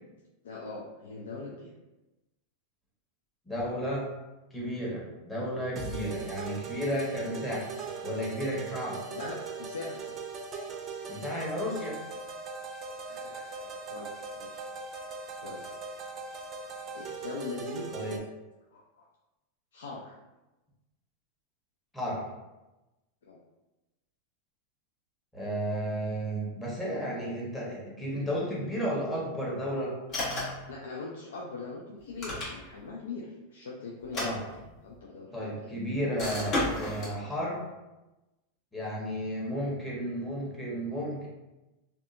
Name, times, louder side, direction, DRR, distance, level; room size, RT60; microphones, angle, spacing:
voice 1, 0.4-1.7 9.1-10.2 13.0-14.6 15.4-15.6 16.9-17.9 18.7-19.1 19.7-20.1 23.2-23.4 30.7-36.0 37.0-37.3, left 3 dB, 90° left, -2 dB, 0.3 m, -42 dB
voice 2, 3.5-4.1 4.5-7.7 8.0-9.1 11.1-12.0 17.9-18.2 21.9-22.2 25.3-29.9 34.1-34.4 35.3-37.7 38.7-41.3, equal, 10° left, -5 dB, 1.0 m, -33 dB
sound 1, 5.7-18.2, right 4 dB, 35° right, 0.4 m, -39 dB
sound 2, 30.1-30.7 32.0-32.9 34.0-35.0 36.2-37.2, left 1 dB, 40° left, 1.1 m, -33 dB
2.7 x 2.3 x 2.5 m, 1.0 s
hypercardioid pair, 120°, 0 cm